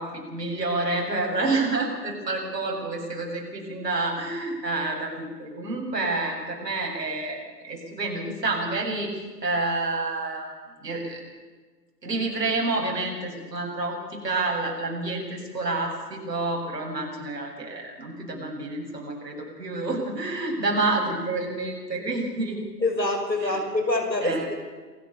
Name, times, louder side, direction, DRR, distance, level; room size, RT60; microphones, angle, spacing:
voice 1, 0.0-10.5 10.8-11.2 12.0-22.6 23.4-23.6 24.2-24.5, right 2 dB, 75° right, 0 dB, 7.5 m, -29 dB
voice 2, 22.8-24.5, left 2 dB, 85° left, 3 dB, 6.1 m, -25 dB
27.5 x 15.5 x 6.9 m, 1.4 s
figure-of-eight pair, 125°, 49 cm